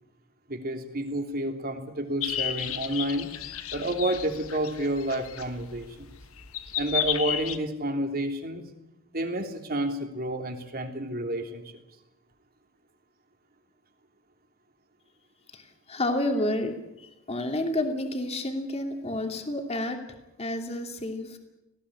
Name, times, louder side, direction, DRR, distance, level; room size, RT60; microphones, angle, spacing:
voice 1, 0.5-3.3 3.7-6.1 6.8-8.6 9.1-11.6, right 1 dB, 45° right, 4 dB, 3.1 m, -30 dB
sound 1, 2.2-7.6, left 11 dB, 75° left, 1.3 m, -33 dB
voice 2, 15.5-20.0 20.4-21.4, left 1 dB, 30° left, 4 dB, 2.7 m, -30 dB
19.0 x 17.0 x 10.0 m, 0.92 s
head